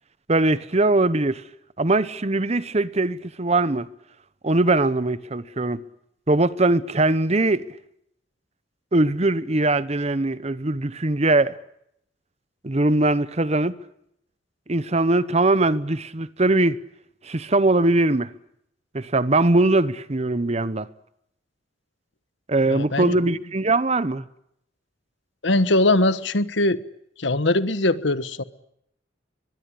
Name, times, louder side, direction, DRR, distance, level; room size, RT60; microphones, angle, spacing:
voice 1, 0.3-1.4 1.8-3.9 4.4-5.8 6.3-7.7 8.9-11.6 12.6-13.8 14.7-16.8 17.2-18.3 18.9-20.9 22.5-24.2, right 2 dB, 35° right, 0.9 m, -21 dB
voice 2, 22.7-23.2 25.4-26.8 27.2-28.4, left 2 dB, 70° left, 1.3 m, -21 dB
23.0 x 21.5 x 10.0 m
head